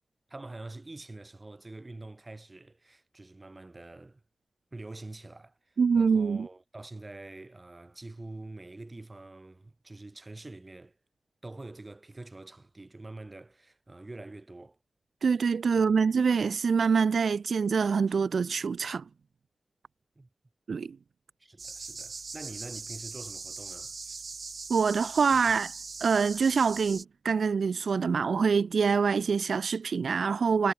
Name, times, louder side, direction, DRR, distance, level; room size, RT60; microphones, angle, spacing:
voice 1, 0.3-4.2 4.7-11.0 11.4-14.8 15.7-15.9 20.2-20.3 21.4-24.2 25.4-25.5, right 2 dB, 30° right, 5.7 m, -45 dB
voice 2, 5.8-6.5 15.2-19.0 20.7-21.0 24.7-25.7 26.0-30.7, right 5 dB, 90° right, 0.4 m, -25 dB
sound 1, 21.6-27.0, right 4 dB, 60° right, 1.4 m, -41 dB
wide cardioid pair, 110°, 0 cm